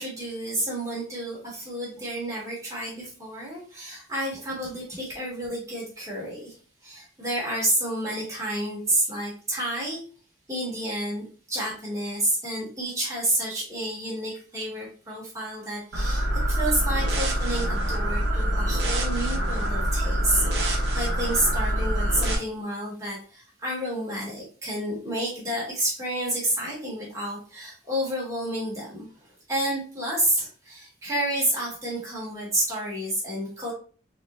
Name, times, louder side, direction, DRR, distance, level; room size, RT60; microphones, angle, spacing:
voice 1, 0.0-6.6 6.8-10.0 10.5-33.7, right 1 dB, 15° right, -5 dB, 1.7 m, -30 dB
sound 1, 15.9-22.3, right 1 dB, 70° right, 0.8 m, -25 dB
4.1 x 3.0 x 2.5 m, 0.39 s
head